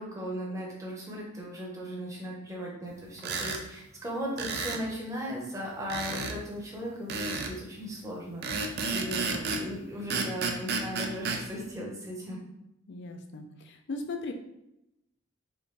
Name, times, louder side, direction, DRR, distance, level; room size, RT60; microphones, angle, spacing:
voice 1, 0.0-12.4, equal, 15° right, -3 dB, 1.0 m, -37 dB
sound 1, 3.2-3.6 4.4-4.8 5.9-6.4 7.1-7.6 8.4-9.7 10.1-11.4, right 4 dB, 50° right, 0.4 m, -32 dB
voice 2, 12.9-14.3, left 3 dB, 60° left, 5 dB, 0.5 m, -38 dB
4.2 x 2.6 x 3.3 m, 0.85 s
head